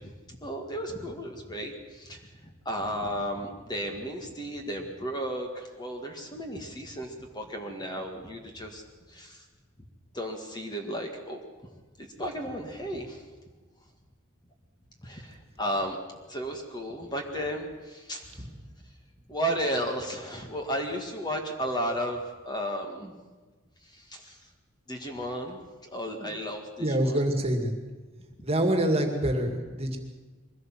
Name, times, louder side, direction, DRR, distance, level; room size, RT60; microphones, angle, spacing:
voice 1, 0.0-9.5 10.1-11.4 12.0-13.3 15.0-16.0 16.3-18.5 19.3-23.1 23.8-24.5 24.9-27.2, equal, 20° left, 3 dB, 1.9 m, -34 dB
voice 2, 26.8-27.7 28.4-30.0, right 1 dB, 30° right, 4 dB, 2.3 m, -26 dB
23.0 x 16.5 x 7.5 m, 1.3 s
head